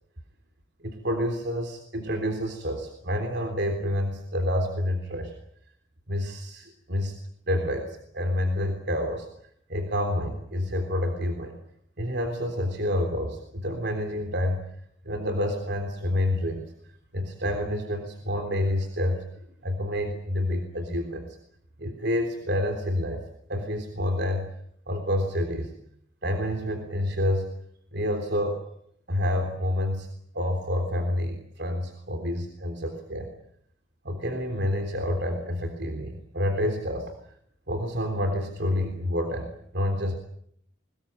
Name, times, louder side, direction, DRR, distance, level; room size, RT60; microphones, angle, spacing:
voice 1, 0.8-5.3 6.1-7.2 7.5-9.3 9.7-11.6 12.0-14.6 15.0-16.7 17.1-19.2 19.6-21.3 21.8-23.2 23.5-24.5 24.9-25.7 26.2-27.5 27.9-28.7 29.1-30.1 30.3-33.3 34.0-37.1 37.7-40.1, left 1 dB, 60° right, 5 dB, 3.5 m, -28 dB
23.5 x 20.5 x 8.8 m, 0.69 s
head